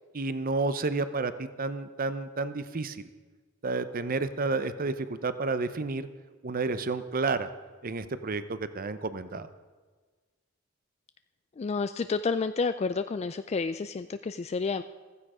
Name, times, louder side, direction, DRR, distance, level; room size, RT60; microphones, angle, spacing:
voice 1, 0.1-3.0 3.6-6.1 6.4-7.5 7.8-9.5, right 3 dB, 45° right, 12 dB, 0.7 m, -31 dB
voice 2, 11.6-14.8, left 4 dB, 30° left, 11 dB, 0.3 m, -30 dB
15.0 x 15.0 x 5.0 m, 1.4 s
head